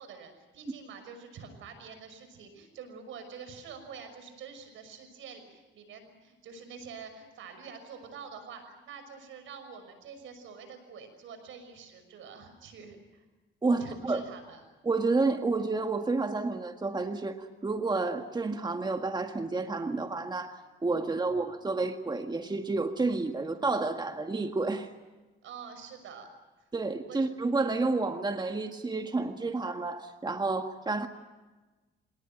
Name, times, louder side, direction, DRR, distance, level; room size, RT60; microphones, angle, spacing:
voice 1, 0.0-13.2 13.8-14.6 25.4-26.3 27.1-27.2, right 6 dB, 80° right, 8 dB, 6.0 m, -47 dB
voice 2, 13.6-14.2 14.8-24.9 26.7-31.1, right 3 dB, 20° right, 6 dB, 1.8 m, -30 dB
26.5 x 19.0 x 8.9 m, 1.2 s
cardioid pair, 90°, 20 cm